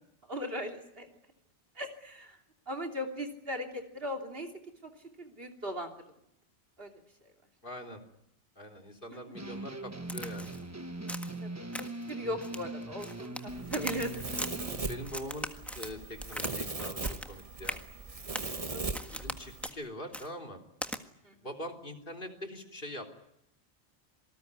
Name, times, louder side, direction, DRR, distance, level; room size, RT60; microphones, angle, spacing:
voice 1, 0.3-1.1 1.8-2.4 2.7-4.5 4.8-4.9 5.2-6.0 6.8-6.9 11.4-11.5 12.1-14.4 18.7-19.1 21.2-21.4, equal, 55° right, 3 dB, 3.3 m, -38 dB
voice 2, 7.6-8.0 8.6-10.5 13.4-13.5 14.9-15.5 15.7-17.0 17.3-17.8 19.1-20.6 21.4-23.1, left 1 dB, 50° left, 3 dB, 3.5 m, -43 dB
sound 1, 9.3-15.1, right 2 dB, 15° right, 1.1 m, -41 dB
Crack, 10.1-10.6 11.1-11.4 11.7-12.1 12.4-13.4 13.7-14.5 15.0-16.5 16.8-17.3 17.6-17.8 18.3-18.5 18.9-19.4 19.6-19.8 20.1-20.3 20.8-21.0, equal, ahead, 1.6 m, -39 dB
Domestic sounds home sounds, 13.5-19.7, right 3 dB, 30° right, 1.4 m, -39 dB
27.0 x 19.5 x 9.6 m, 0.78 s
omnidirectional pair, 1.2 m